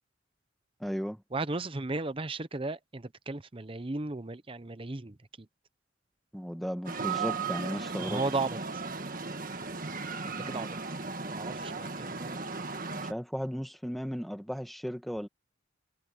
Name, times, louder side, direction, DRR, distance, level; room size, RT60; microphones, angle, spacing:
voice 1, 0.8-1.2 6.3-8.2 10.4-10.6 13.0-15.3, equal, ahead, 1.3 m, -35 dB
voice 2, 1.3-5.5 8.0-8.8 10.2-10.7 11.2-12.5, right 3 dB, 25° right, 0.7 m, -35 dB
sound 1, 6.9-13.1, right 4 dB, 45° right, 1.6 m, -36 dB
head